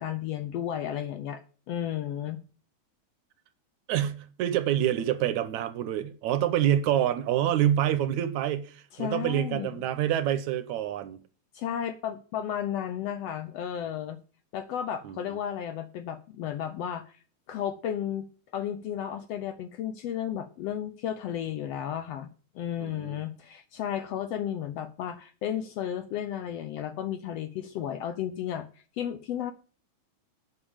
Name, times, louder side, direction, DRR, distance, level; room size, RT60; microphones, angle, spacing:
voice 1, 0.0-1.4 1.7-2.4 8.9-9.7 11.5-14.2 14.5-17.2 17.5-18.3 18.5-29.5, left 10 dB, 70° left, 1.6 m, -33 dB
voice 2, 3.9-11.2 15.0-15.4 22.8-23.2, right 11 dB, 75° right, 2.1 m, -27 dB
8.8 x 6.7 x 8.7 m
omnidirectional pair, 3.5 m